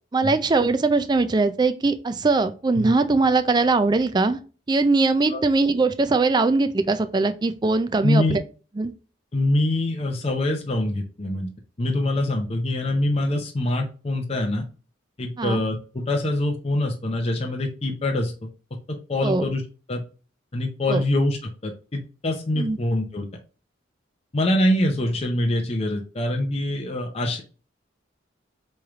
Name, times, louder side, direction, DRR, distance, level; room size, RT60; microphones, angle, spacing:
voice 1, 0.1-4.4 4.7-8.4 8.8-8.9 15.4-15.6 19.2-19.5 20.9-21.0 22.6-22.8, right 3 dB, 20° right, 0.3 m, -21 dB
voice 2, 8.0-8.4 9.3-11.5 11.8-14.6 15.2-18.3 18.9-19.6 19.9-20.0 20.5-23.3 24.3-27.4, left 1 dB, 30° left, 0.6 m, -24 dB
4.7 x 3.1 x 2.3 m
head